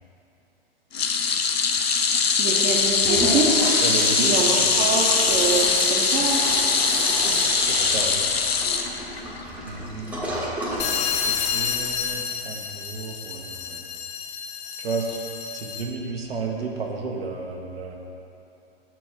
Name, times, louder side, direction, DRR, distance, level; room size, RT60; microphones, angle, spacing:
sound 1, 0.9-9.4 9.8-10.0 11.2-11.3, left 5 dB, 85° left, 0.6 m, -22 dB
voice 1, 2.4-3.6 4.2-5.6 5.9-6.4, right 5 dB, 25° right, -6 dB, 0.9 m, -25 dB
Toilet flush, 2.8-12.2, right 1 dB, 5° right, 1.1 m, -30 dB
voice 2, 3.8-4.5 7.2-8.2 9.6-10.3 11.2-13.8 14.8-15.2 15.5-18.0, right 4 dB, 80° right, 0 dB, 1.0 m, -32 dB
sound 2, 10.8-16.0, left 7 dB, 20° left, 0.5 m, -30 dB
6.2 x 4.5 x 6.3 m, 2.8 s
hypercardioid pair, 110°, 30 cm